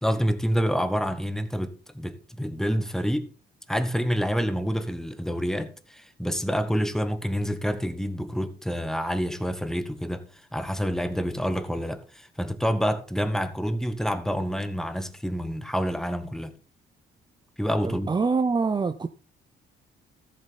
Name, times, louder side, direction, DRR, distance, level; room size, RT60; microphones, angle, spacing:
voice 1, 0.0-3.3 3.7-16.5 17.6-18.1, equal, ahead, 1.2 m, -28 dB
voice 2, 17.8-19.1, right 4 dB, 20° right, 0.6 m, -25 dB
13.5 x 7.6 x 4.1 m
cardioid pair, 90°, 20 cm